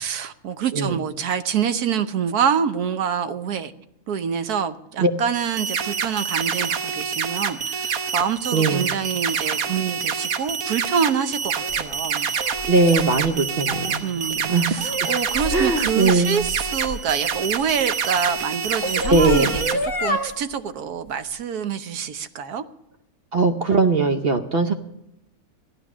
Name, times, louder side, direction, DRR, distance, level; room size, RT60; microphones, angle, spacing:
voice 1, 0.0-3.7 4.1-12.3 14.0-22.6, right 7 dB, 90° right, 11 dB, 1.4 m, -26 dB
sound 1, 5.3-19.7, right 6 dB, 70° right, 1.4 m, -27 dB
voice 2, 8.5-8.8 12.7-14.0 14.4-14.8 15.5-16.4 19.0-19.5 23.3-24.7, right 3 dB, 45° right, 7 dB, 0.9 m, -20 dB
sound 2, 11.6-17.8 18.5-20.3, left 1 dB, 60° left, 1.9 m, -30 dB
15.0 x 11.0 x 6.1 m, 0.85 s
omnidirectional pair, 1.6 m